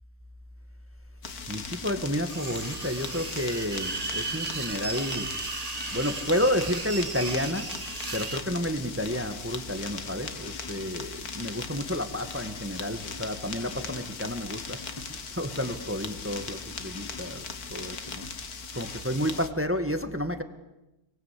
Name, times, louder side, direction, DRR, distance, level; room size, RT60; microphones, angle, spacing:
sound 1, 1.2-19.5, left 5 dB, 55° left, 2.1 m, -39 dB
voice 1, 1.5-5.3 5.9-7.7 8.1-17.4 17.7-18.3 18.7-20.4, equal, 5° right, 8 dB, 1.5 m, -31 dB
sound 2, 2.3-8.4, right 4 dB, 25° right, 0.9 m, -35 dB
28.5 x 23.5 x 8.4 m, 0.94 s
omnidirectional pair, 2.0 m